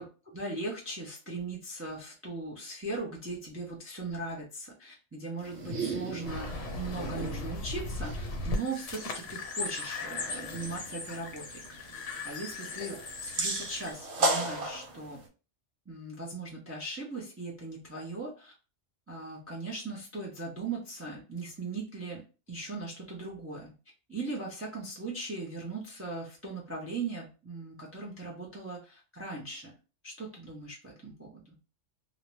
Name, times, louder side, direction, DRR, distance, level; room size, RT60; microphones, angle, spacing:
voice 1, 0.0-11.6 12.2-15.2 15.9-18.5 19.1-22.2 22.5-23.7 24.1-29.7 30.0-31.6, right 3 dB, 15° right, -2 dB, 0.4 m, -39 dB
sound 1, 5.4-15.3, right 2 dB, 80° right, 1.0 m, -37 dB
sound 2, 6.2-13.9, left 2 dB, 80° left, 1.0 m, -38 dB
2.5 x 2.1 x 3.0 m, 0.33 s
omnidirectional pair, 1.2 m